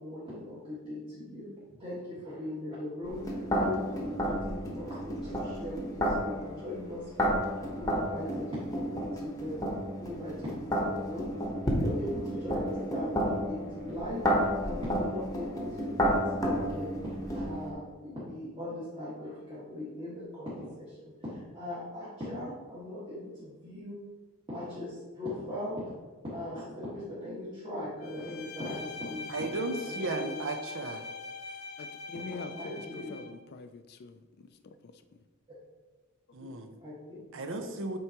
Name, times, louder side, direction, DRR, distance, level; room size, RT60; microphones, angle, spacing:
voice 1, 0.0-1.5 1.8-3.2 3.5-7.4 7.7-8.6 8.9-9.6 10.0-11.3 11.6-24.0 24.5-25.9 26.2-29.3 29.8-30.4 32.3-33.1 36.8-37.2, left 1 dB, 25° right, 1.7 m, -39 dB
sound 1, 3.0-17.7, equal, 15° left, 1.0 m, -32 dB
Bowed string instrument, 28.0-33.4, left 4 dB, 85° left, 0.8 m, -43 dB
voice 2, 29.3-31.0 36.3-36.7 37.3-38.0, right 2 dB, 60° right, 0.6 m, -35 dB
voice 3, 31.8-35.0, left 3 dB, 50° left, 0.4 m, -45 dB
7.8 x 4.6 x 2.9 m
head